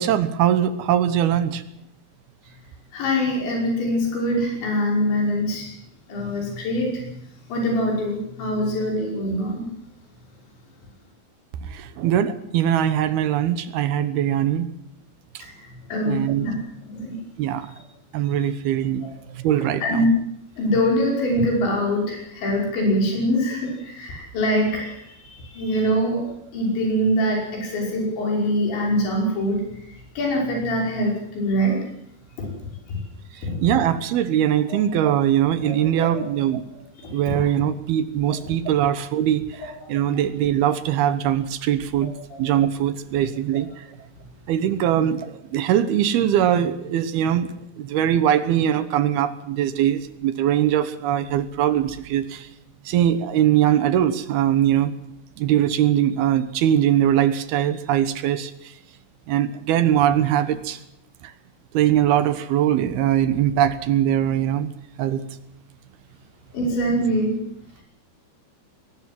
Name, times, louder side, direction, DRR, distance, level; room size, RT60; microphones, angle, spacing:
voice 1, 0.0-1.6 11.7-14.7 15.3-15.4 16.0-16.5 17.4-17.7 18.1-19.1 19.4-20.1 25.9-26.0 33.6-36.7 37.1-42.1 42.4-43.7 44.5-47.5 47.8-52.5 52.9-54.9 55.4-58.5 59.3-60.8 61.7-64.7 65.0-65.2, right 10 dB, 70° right, 12 dB, 2.8 m, -21 dB
voice 2, 2.9-5.7 6.1-7.0 7.5-9.7 15.4-15.5 15.9-16.6 16.9-17.2 19.8-20.1 20.6-26.2 26.5-29.6 30.2-31.8 32.9-33.0 33.4-33.5 34.7-34.8 35.6-35.8 36.1-36.3 37.4-37.5 66.5-67.4, equal, 80° left, -1 dB, 8.0 m, -23 dB
21.0 x 19.0 x 7.6 m, 0.78 s
omnidirectional pair, 5.1 m